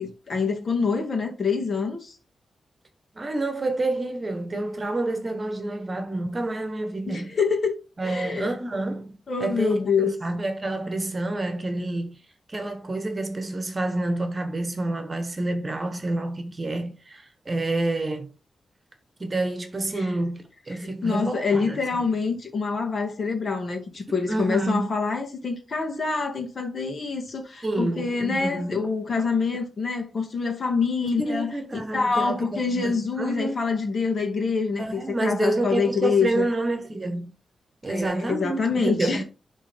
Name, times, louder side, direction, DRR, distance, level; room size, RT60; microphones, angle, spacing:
voice 1, 0.0-2.2 7.1-7.8 8.0-8.5 9.3-10.1 20.0-20.1 20.7-36.5 37.9-39.2, left 5 dB, 50° left, 2.2 m, -26 dB
voice 2, 3.1-7.4 8.0-12.2 12.5-18.3 19.2-21.8 24.1-24.9 27.6-28.8 31.2-33.6 34.8-37.3 37.8-39.2, right 2 dB, 30° right, 1.3 m, -28 dB
11.0 x 3.8 x 3.6 m
wide cardioid pair, 115°, 0 cm